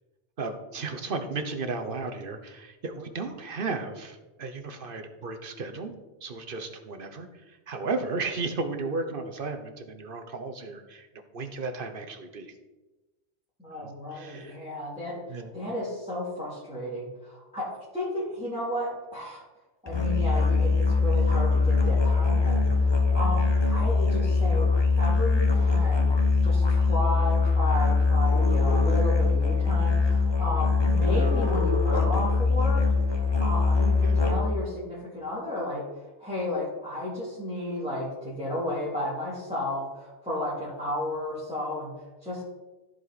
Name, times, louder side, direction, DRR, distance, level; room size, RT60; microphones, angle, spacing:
voice 1, 0.4-5.9 6.2-11.1 11.3-12.5 13.8-14.6 15.3-15.5 34.0-34.1, right 3 dB, 50° right, 6 dB, 1.0 m, -34 dB
voice 2, 13.6-17.7 17.9-19.4 19.8-23.4 23.7-26.1 26.4-35.8 36.2-41.9 42.2-42.4, left 1 dB, 5° right, -9 dB, 2.5 m, -33 dB
Musical instrument, 19.9-34.6, left 4 dB, 25° left, 1.0 m, -22 dB
14.5 x 4.8 x 4.1 m, 1.1 s
omnidirectional pair, 1.2 m